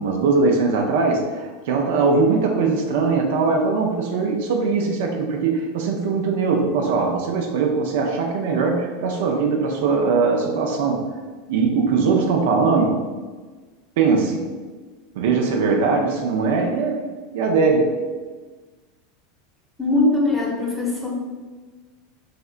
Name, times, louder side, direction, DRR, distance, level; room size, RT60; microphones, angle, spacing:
voice 1, 0.0-11.0 11.5-13.0 14.0-14.5 15.2-17.0 17.3-17.9, right 4 dB, 70° right, 2 dB, 0.4 m, -20 dB
voice 2, 19.8-21.1, left 2 dB, 5° left, -3 dB, 0.9 m, -21 dB
3.3 x 2.7 x 2.4 m, 1.4 s
hypercardioid pair, 90°, 0 cm